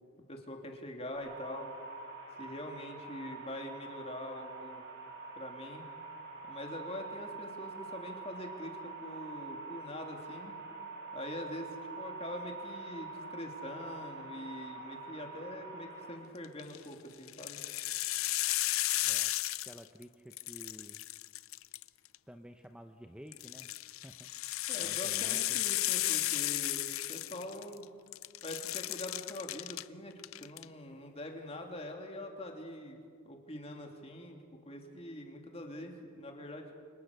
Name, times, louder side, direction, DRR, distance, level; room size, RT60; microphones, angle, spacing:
voice 1, 0.3-1.7 2.4-4.8 5.4-5.8 6.4-10.6 11.1-11.7 12.0-17.6 24.7-27.8 28.4-33.0 33.2-36.7, left 1 dB, 30° left, 2 dB, 3.0 m, -44 dB
sound 1, 1.1-16.1, right 3 dB, 55° right, 7.8 m, -45 dB
sound 2, 16.4-16.8 17.3-20.0 20.3-22.2 23.3-27.8 28.1-29.8 30.2-30.6, left 16 dB, 85° left, 0.6 m, -34 dB
voice 2, 19.6-21.0 22.3-23.7 24.0-24.3 24.8-25.6, equal, 5° right, 6 dB, 0.8 m, -51 dB
29.5 x 25.0 x 6.7 m, 2.1 s
head